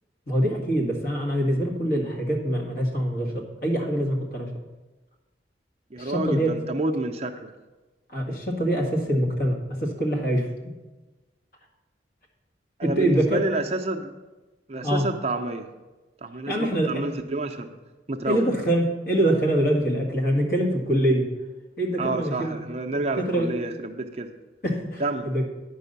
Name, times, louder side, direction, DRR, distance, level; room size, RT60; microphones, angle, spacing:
voice 1, 0.3-4.5 6.0-6.5 8.1-10.7 12.8-13.4 14.8-15.1 16.5-17.1 18.3-21.3 21.8-22.6 22.9-23.5 24.6-25.4, right 1 dB, 55° left, 1 dB, 1.8 m, -24 dB
voice 2, 5.9-7.5 12.8-14.1 14.7-15.7 16.2-17.7 18.1-18.5 22.0-24.3 25.0-25.3, right 2 dB, 35° right, 4 dB, 0.6 m, -29 dB
9.9 x 5.4 x 6.7 m, 1.2 s
head